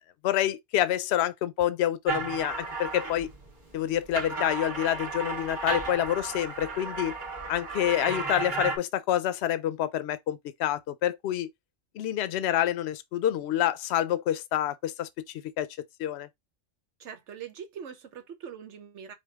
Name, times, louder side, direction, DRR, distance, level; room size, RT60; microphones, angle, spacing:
voice 1, 0.2-3.3 3.7-7.1 7.5-11.5 12.0-15.1 15.6-15.7 16.0-16.3, left 12 dB, 70° left, 0.8 m, -27 dB
sound 1, 2.1-3.5 3.9-8.8, right 4 dB, 45° right, 1.4 m, -34 dB
voice 2, 17.0-19.1, right 7 dB, 85° right, 1.2 m, -42 dB
5.1 x 2.3 x 3.4 m
omnidirectional pair, 1.2 m